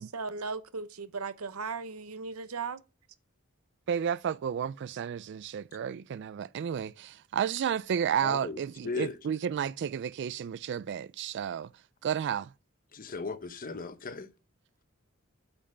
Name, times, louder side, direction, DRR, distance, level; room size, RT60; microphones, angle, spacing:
voice 1, 0.0-2.8, right 4 dB, 85° right, 0.8 m, -37 dB
voice 2, 3.9-11.7 12.0-12.5, right 8 dB, 55° right, 0.3 m, -32 dB
voice 3, 8.2-8.6 8.8-9.1 12.9-14.3, left 4 dB, 40° left, 0.8 m, -36 dB
8.7 x 5.4 x 5.4 m
head